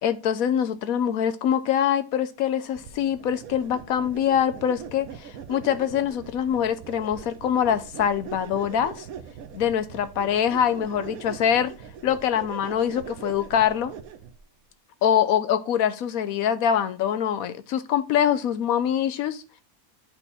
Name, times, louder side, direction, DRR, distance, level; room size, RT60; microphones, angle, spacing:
voice 1, 0.0-9.1 9.5-11.7 12.0-13.9 15.0-19.4, left 9 dB, 80° left, 12 dB, 1.1 m, -24 dB
sound 1, 2.7-14.4, right 7 dB, 80° right, 1.2 m, -41 dB
9.0 x 4.2 x 3.5 m, 0.31 s
omnidirectional pair, 1.5 m